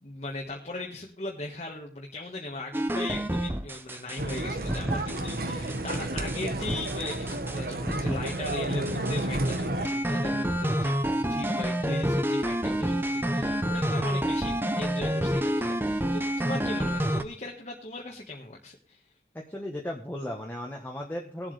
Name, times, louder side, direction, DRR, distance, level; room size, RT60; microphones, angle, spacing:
voice 1, 0.0-19.0, left 2 dB, 40° left, 0 dB, 1.4 m, -38 dB
Cool Techno, 2.7-4.4 4.7-5.4 5.7-7.6 7.9-8.6 8.9-17.2, equal, 10° right, 0.7 m, -28 dB
sound 1, 4.2-9.9, right 1 dB, 55° right, 1.3 m, -31 dB
voice 2, 19.3-21.5, left 1 dB, 10° left, 0 dB, 1.2 m, -36 dB
19.5 x 7.8 x 3.3 m, 0.40 s
head